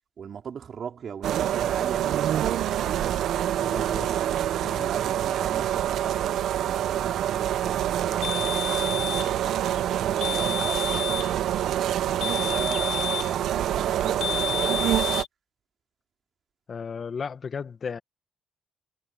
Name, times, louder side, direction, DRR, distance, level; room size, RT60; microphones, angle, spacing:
voice 1, 0.2-3.3 3.7-4.4 4.8-15.1, right 7 dB, 55° right, 4.7 m, -39 dB
sound 1, 1.2-15.2, right 11 dB, 75° right, 0.8 m, -26 dB
voice 2, 3.6-4.1 4.6-4.9 16.7-18.0, left 6 dB, 45° left, 1.7 m, -35 dB
sound 2, 8.2-9.3 10.2-11.3 12.2-13.3 14.2-15.3, left 11 dB, 80° left, 1.4 m, -31 dB
cardioid pair, 90°, 0 cm